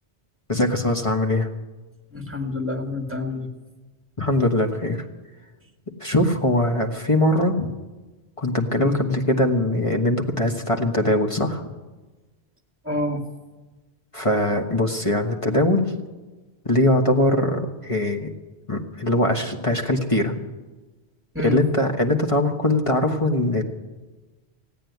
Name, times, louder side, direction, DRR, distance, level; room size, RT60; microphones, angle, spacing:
voice 1, 0.5-1.5 4.2-5.0 6.0-7.7 8.4-11.6 14.1-15.9 16.6-18.3 18.7-20.3 21.4-23.6, left 1 dB, 30° left, 2 dB, 1.4 m, -21 dB
voice 2, 2.1-3.5 8.8-9.0 12.8-13.2 21.3-21.6, left 1 dB, 10° right, 5 dB, 1.7 m, -28 dB
16.5 x 9.2 x 9.4 m, 1.2 s
omnidirectional pair, 1.1 m